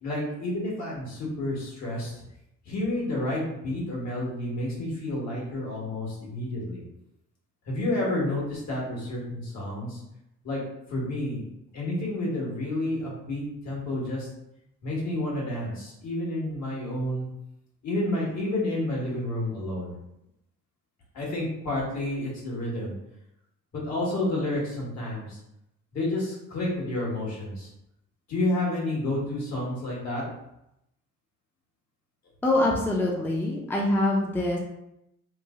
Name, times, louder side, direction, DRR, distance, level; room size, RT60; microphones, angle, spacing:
voice 1, 0.0-2.1 2.6-6.8 7.7-10.0 10.4-10.6 10.9-11.4 11.7-14.3 14.8-17.3 17.8-19.9 21.1-22.9 23.7-25.4 25.9-27.7 28.3-30.2, left 1 dB, 65° left, -4 dB, 1.5 m, -30 dB
voice 2, 32.4-34.6, left 1 dB, 5° left, -2 dB, 0.5 m, -24 dB
3.1 x 2.0 x 3.5 m, 0.83 s
cardioid pair, 90°, 30 cm